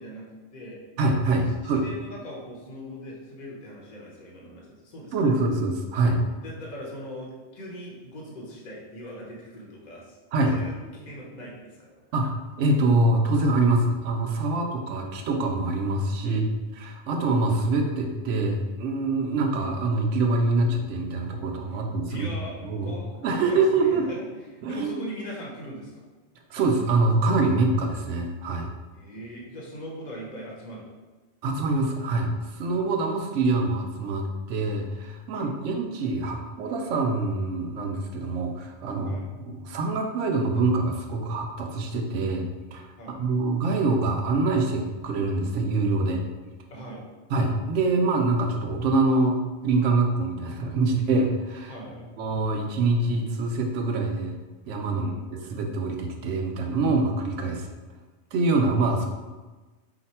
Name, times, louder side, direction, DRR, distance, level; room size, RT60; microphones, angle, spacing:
voice 1, 0.0-0.8 1.6-5.1 6.4-10.2 10.5-11.9 16.2-16.4 21.7-21.8 22.1-22.6 22.8-26.1 28.9-30.9 35.3-35.6 39.0-39.3 43.0-43.2 46.7-47.1 51.7-52.1 54.9-55.2, equal, 40° left, -3 dB, 1.0 m, -40 dB
voice 2, 1.0-1.8 5.1-6.2 10.3-10.5 12.1-16.4 16.8-22.3 22.6-23.0 23.2-24.1 24.6-24.9 26.5-28.7 31.4-42.9 43.2-46.2 47.3-49.4 49.6-51.8 52.2-54.4 54.7-57.7 58.3-59.1, right 2 dB, 80° right, 2 dB, 1.0 m, -25 dB
4.8 x 2.2 x 4.2 m, 1.2 s
omnidirectional pair, 1.3 m